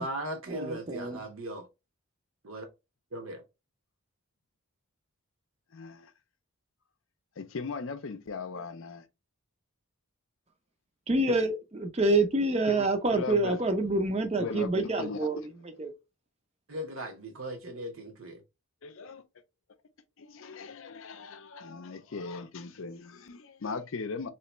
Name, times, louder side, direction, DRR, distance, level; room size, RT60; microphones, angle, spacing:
voice 1, 0.0-1.7 2.4-2.6 3.1-3.4 16.7-18.4, right 1 dB, 65° right, 1.2 m, -38 dB
voice 2, 0.5-1.2 11.1-15.4 15.8-15.9, right 2 dB, 30° right, 0.6 m, -27 dB
voice 3, 5.7-6.1 7.4-9.0 11.3-11.4 12.7-13.6 14.4-15.5 18.8-19.2 20.2-24.3, left 4 dB, 60° left, 0.5 m, -38 dB
3.4 x 3.1 x 3.0 m
head